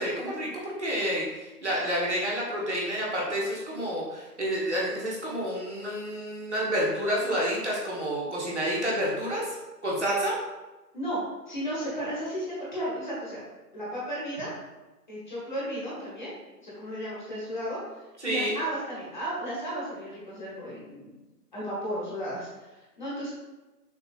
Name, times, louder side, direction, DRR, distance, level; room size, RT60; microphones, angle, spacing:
voice 1, 0.0-9.6 9.8-10.4 18.2-18.5, equal, 45° right, -4 dB, 1.2 m, -29 dB
voice 2, 11.5-13.4 13.7-14.5 15.1-16.3 16.6-17.8 18.2-21.1 21.5-23.3, equal, 30° left, -7 dB, 1.3 m, -34 dB
6.3 x 3.0 x 2.4 m, 1.1 s
figure-of-eight pair, 165°, 49 cm